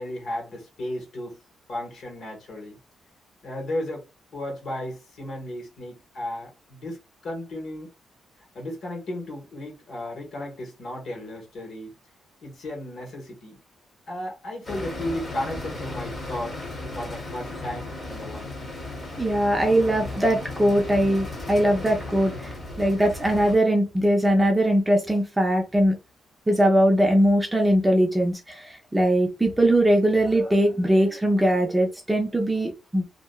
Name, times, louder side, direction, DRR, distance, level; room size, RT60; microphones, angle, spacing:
voice 1, 0.0-1.4 1.7-2.8 3.4-7.9 8.5-11.9 12.4-13.6 14.1-18.6, left 1 dB, 50° left, 1.2 m, -34 dB
sound 1, 14.6-23.6, left 2 dB, 20° left, 1.0 m, -35 dB
voice 2, 19.2-26.0 26.5-33.0, right 1 dB, 10° right, 0.4 m, -21 dB
2.8 x 2.2 x 2.2 m
wide cardioid pair, 180°, 0 cm